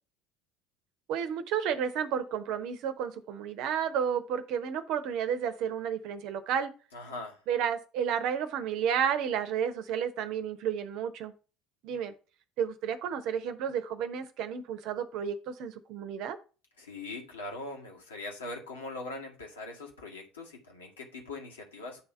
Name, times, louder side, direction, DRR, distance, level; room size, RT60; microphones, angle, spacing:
voice 1, 1.1-6.7 7.5-11.3 11.8-12.1 12.6-16.4, right 8 dB, 50° right, 0.8 m, -31 dB
voice 2, 6.9-7.4 16.8-22.0, left 2 dB, 75° left, 1.8 m, -41 dB
8.4 x 3.4 x 5.4 m
figure-of-eight pair, 65°, 0 cm